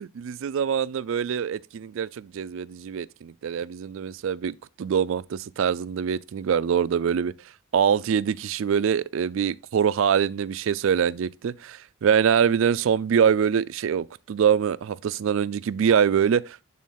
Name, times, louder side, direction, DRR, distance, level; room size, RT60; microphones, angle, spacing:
voice 1, 0.0-7.3 7.7-16.6, right 7 dB, 60° right, 0.3 m, -24 dB
8.4 x 3.7 x 3.9 m
head